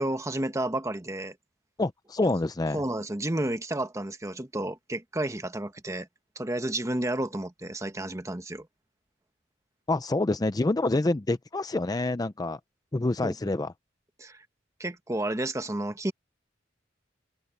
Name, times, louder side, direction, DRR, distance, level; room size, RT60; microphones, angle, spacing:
voice 1, 0.0-1.4 2.7-6.1 6.4-8.7 13.2-13.3 14.2-14.4 14.8-16.1, right 1 dB, 15° right, 1.1 m, -31 dB
voice 2, 1.8-2.8 9.9-12.6 12.9-13.7, left 2 dB, 20° left, 0.4 m, -27 dB
open air
head